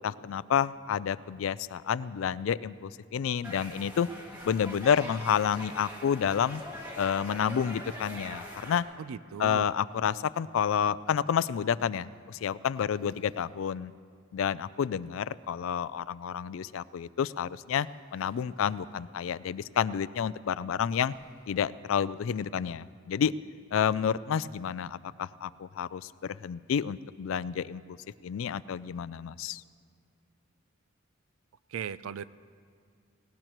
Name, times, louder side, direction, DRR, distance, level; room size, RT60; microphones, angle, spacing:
voice 1, 0.0-4.1 4.4-6.6 7.0-8.9 9.4-13.9 14.3-17.9 18.1-21.1 21.5-23.3 23.7-27.8 28.2-29.6, left 8 dB, 70° left, 18 dB, 0.3 m, -29 dB
sound 1, 3.4-8.8, equal, 10° right, 1.5 m, -43 dB
sound 2, 7.3-7.4 9.3-10.2 12.1-12.2 12.7-13.5 17.8-18.9 19.4-19.5 20.9-21.9 22.4-22.5 22.8-22.9, right 1 dB, 40° right, 3.9 m, -62 dB
voice 2, 9.0-9.7 31.7-32.2, right 7 dB, 80° right, 16 dB, 0.4 m, -37 dB
18.5 x 18.0 x 3.0 m, 2.2 s
head